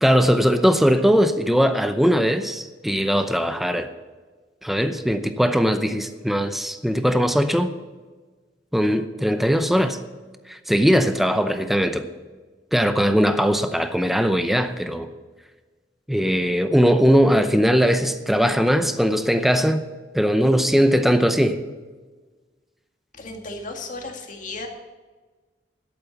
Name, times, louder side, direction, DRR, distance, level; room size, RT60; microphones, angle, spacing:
voice 1, 0.0-3.9 4.6-7.7 8.7-10.0 10.5-12.1 12.7-15.1 16.1-19.8 20.1-21.6, equal, ahead, 9 dB, 0.7 m, -20 dB
voice 2, 23.1-24.7, left 2 dB, 45° left, 3 dB, 2.0 m, -34 dB
11.5 x 8.6 x 7.1 m, 1.3 s
head